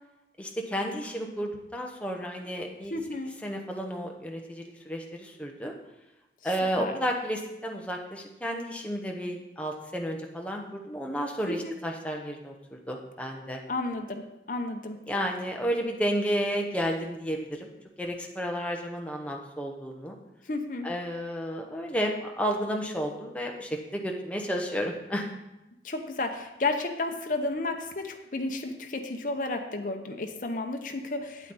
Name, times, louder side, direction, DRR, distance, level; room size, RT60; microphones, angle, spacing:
voice 1, 0.4-3.0 3.4-5.7 6.4-13.6 15.1-17.7 18.0-20.2 20.8-25.3, equal, 5° left, 1 dB, 0.9 m, -32 dB
voice 2, 2.9-3.3 6.8-7.0 11.5-11.7 13.7-15.0 20.5-20.9 25.8-31.5, left 2 dB, 45° left, 5 dB, 0.9 m, -32 dB
8.9 x 8.2 x 4.2 m, 0.96 s
head